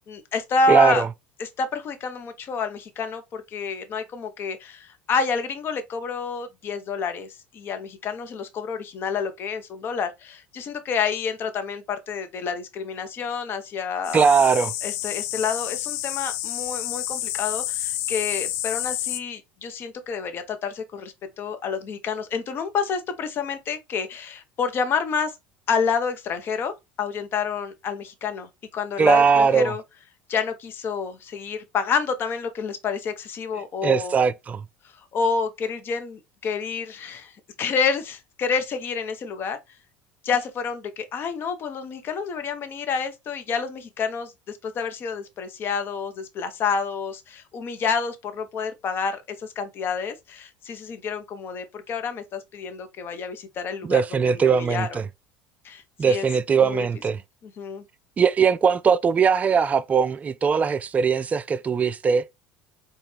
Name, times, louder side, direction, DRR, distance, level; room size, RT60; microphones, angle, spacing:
voice 1, 0.1-1.0 1.4-7.3 7.5-14.3 14.8-25.3 25.7-29.8 30.3-34.1 35.1-37.3 37.6-39.6 40.2-55.0 55.6-56.3 56.6-56.9 57.4-57.8, left 5 dB, 45° left, 0.9 m, -29 dB
voice 2, 0.7-1.1 14.1-14.7 29.0-29.7 33.8-34.6 53.8-55.0 56.0-57.2 58.2-62.2, right 6 dB, 30° right, 0.4 m, -20 dB
sound 1, 14.0-19.2, left 13 dB, 65° left, 0.5 m, -29 dB
4.2 x 2.4 x 3.3 m
hypercardioid pair, 80°, 5 cm